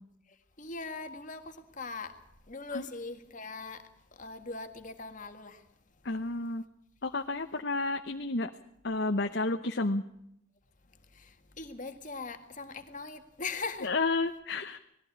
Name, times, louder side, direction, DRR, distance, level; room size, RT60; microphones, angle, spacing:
voice 1, 0.3-6.0 10.9-13.9, left 4 dB, 40° left, 1.8 m, -41 dB
voice 2, 6.0-6.6 7.0-8.5 8.8-10.0 13.8-14.8, left 3 dB, 55° left, 0.9 m, -31 dB
20.0 x 15.0 x 8.7 m
head